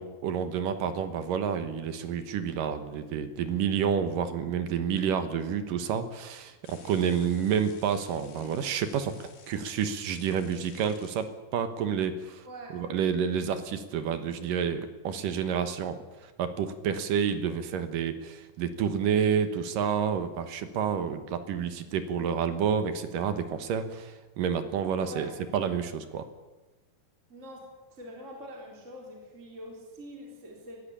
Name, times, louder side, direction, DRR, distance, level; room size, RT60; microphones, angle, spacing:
voice 1, 0.0-12.4 12.7-26.2, right 7 dB, 65° right, 10 dB, 2.6 m, -29 dB
sound 1, 6.6-11.3, left 5 dB, 60° left, 4.1 m, -54 dB
voice 2, 12.5-12.8 25.0-25.3 27.3-27.6 27.9-30.8, equal, 20° right, -1 dB, 3.8 m, -44 dB
21.5 x 15.5 x 8.6 m, 1.2 s
omnidirectional pair, 4.6 m